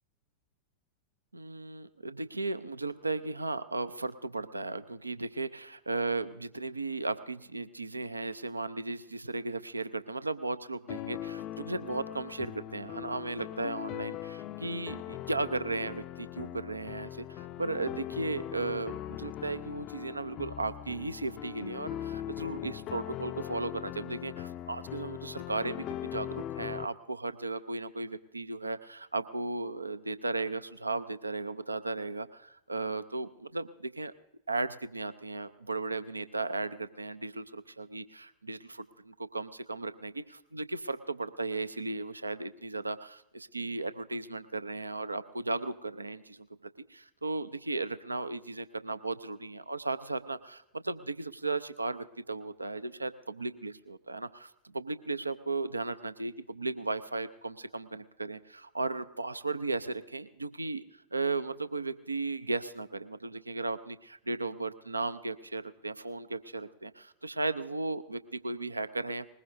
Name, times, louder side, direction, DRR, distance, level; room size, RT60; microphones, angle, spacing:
voice 1, 1.3-34.1 34.5-46.5 46.9-60.8 61.1-69.3, right 3 dB, 80° right, 13 dB, 0.5 m, -36 dB
sound 1, 10.9-26.9, left 12 dB, 35° left, 0.5 m, -40 dB
20.5 x 20.5 x 2.6 m, 0.83 s
figure-of-eight pair, 90°, 0 cm